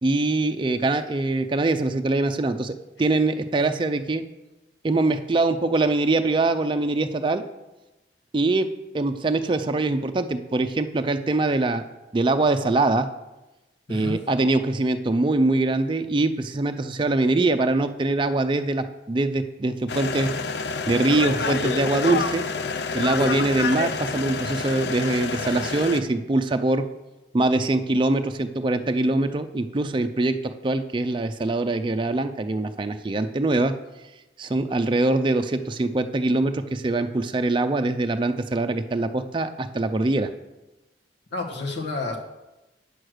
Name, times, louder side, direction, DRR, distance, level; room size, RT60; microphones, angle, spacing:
voice 1, 0.0-4.2 4.8-7.4 8.3-8.7 8.9-11.8 12.1-13.1 13.9-20.3 20.9-22.4 22.9-26.8 27.3-33.7 34.4-40.3, right 2 dB, 25° right, 7 dB, 0.4 m, -23 dB
sound 1, 19.9-26.0, left 4 dB, 65° left, 0.5 m, -28 dB
voice 2, 41.3-42.2, left 3 dB, 90° left, -1 dB, 1.5 m, -30 dB
8.5 x 6.3 x 6.4 m, 1.0 s
head